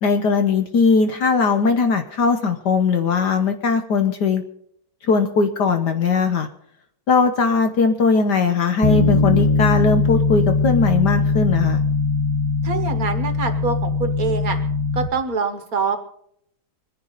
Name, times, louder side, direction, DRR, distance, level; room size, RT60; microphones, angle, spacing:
voice 1, 0.0-4.4 5.0-6.5 7.1-11.8, left 4 dB, 60° left, 7 dB, 1.4 m, -19 dB
Bass guitar, 8.8-15.1, left 4 dB, 30° left, 0.5 m, -20 dB
voice 2, 12.6-14.6 14.9-16.0, right 5 dB, 50° right, 7 dB, 1.6 m, -25 dB
24.0 x 10.5 x 4.0 m, 0.70 s
omnidirectional pair, 2.2 m